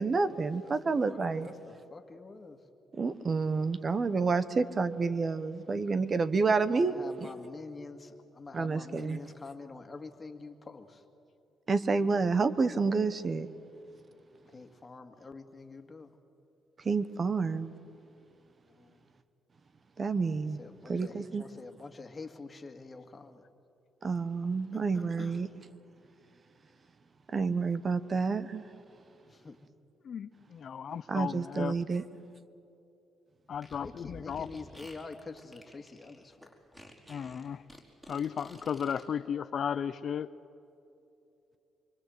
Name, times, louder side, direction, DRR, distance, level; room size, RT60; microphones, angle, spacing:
voice 1, 0.0-1.5 2.9-7.3 8.5-9.2 11.7-13.5 16.8-17.7 20.0-20.6 20.9-21.5 24.0-25.5 27.3-28.6 31.1-32.0, right 4 dB, 40° right, 14 dB, 1.1 m, -29 dB
voice 2, 1.1-2.6 6.8-11.0 14.5-16.1 18.7-19.0 20.6-23.4 24.7-25.4 29.3-29.6 33.7-36.5, left 3 dB, 30° left, 6 dB, 2.2 m, -46 dB
voice 3, 30.0-31.8 33.5-34.6 37.1-37.6 38.1-40.3, left 8 dB, 55° left, 13 dB, 0.6 m, -35 dB
Fart, 33.5-39.0, equal, 10° right, 4.8 m, -52 dB
25.5 x 24.5 x 8.0 m, 2.8 s
cardioid pair, 90°, 0 cm